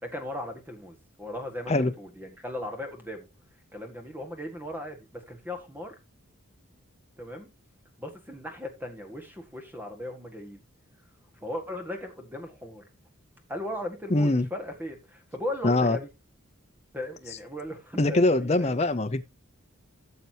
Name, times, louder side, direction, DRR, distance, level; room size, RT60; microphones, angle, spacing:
voice 1, 0.0-3.3 3.7-5.9 7.2-7.5 8.0-10.6 11.4-12.8 13.5-16.1 16.9-18.8, left 1 dB, 10° right, 1.8 m, -37 dB
voice 2, 14.1-14.5 15.6-16.0 18.0-19.2, left 2 dB, 30° left, 0.7 m, -23 dB
14.0 x 6.9 x 3.0 m
head